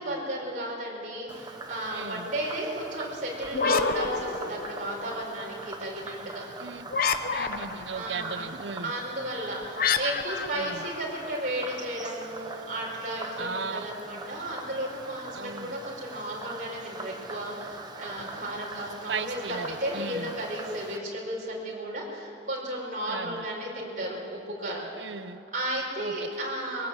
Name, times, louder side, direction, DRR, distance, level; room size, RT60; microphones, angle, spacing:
voice 1, 0.0-6.4 7.9-8.4 8.8-24.8 25.5-26.9, right 1 dB, 45° right, -3 dB, 4.9 m, -34 dB
Frog, 1.3-21.0, right 3 dB, 25° right, 1.1 m, -43 dB
voice 2, 1.9-2.3 6.6-6.9 7.3-8.9 10.5-10.9 13.4-13.9 15.3-15.7 19.1-20.3 23.1-23.4 25.0-25.4 26.0-26.3, right 5 dB, 80° right, 11 dB, 0.9 m, -36 dB
sound 1, 3.4-5.0 6.9-7.9 9.8-11.6, left 5 dB, 50° left, 0.9 m, -28 dB
21.5 x 17.5 x 8.3 m, 2.8 s
head